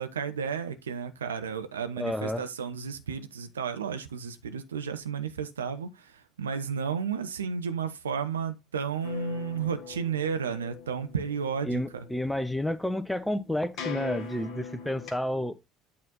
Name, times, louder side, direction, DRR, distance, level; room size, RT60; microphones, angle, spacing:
voice 1, 0.0-12.1, right 6 dB, 80° right, 0.7 m, -33 dB
voice 2, 2.0-2.4 11.6-15.6, left 1 dB, 5° left, 0.8 m, -30 dB
sound 1, 9.0-15.1, left 5 dB, 50° left, 1.5 m, -42 dB
8.6 x 4.2 x 3.9 m
figure-of-eight pair, 60°, 0 cm